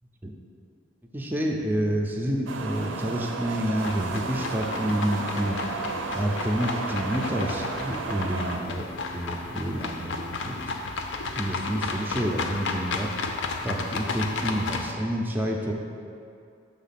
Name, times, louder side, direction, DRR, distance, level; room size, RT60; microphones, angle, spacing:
voice 1, 1.1-5.6 6.1-8.9 9.1-10.7 11.3-13.1 13.6-15.7, right 1 dB, 10° right, -1 dB, 0.5 m, -28 dB
sound 1, 2.5-8.6, right 4 dB, 75° right, 0.5 m, -33 dB
sound 2, 3.8-14.9, left 3 dB, 65° left, 0.5 m, -33 dB
6.1 x 3.6 x 5.8 m, 2.5 s
head